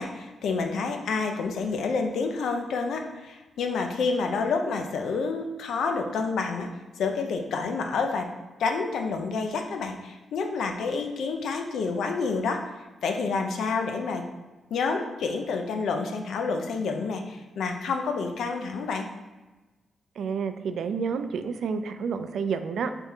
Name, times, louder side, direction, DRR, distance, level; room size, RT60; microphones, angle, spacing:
voice 1, 0.0-6.7 7.0-8.3 8.6-12.7 13.0-14.3 14.7-19.1, left 4 dB, 80° left, 4 dB, 0.5 m, -28 dB
voice 2, 20.2-22.9, right 6 dB, 70° right, 9 dB, 0.3 m, -29 dB
3.5 x 3.5 x 4.3 m, 1.2 s
cardioid pair, 120°, 0 cm